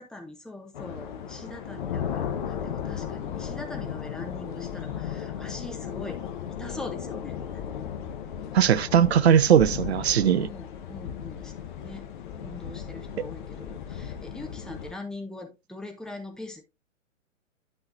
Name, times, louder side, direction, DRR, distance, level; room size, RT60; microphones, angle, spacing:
voice 1, 0.0-6.2 6.5-7.6 9.9-11.5 11.8-12.1 12.4-16.6, left 2 dB, ahead, 1.1 m, -42 dB
sound 1, 0.7-14.9, left 8 dB, 40° left, 1.2 m, -35 dB
voice 2, 8.5-10.5 13.2-13.3, right 9 dB, 55° right, 0.7 m, -19 dB
11.5 x 5.6 x 2.7 m
figure-of-eight pair, 120°, 40 cm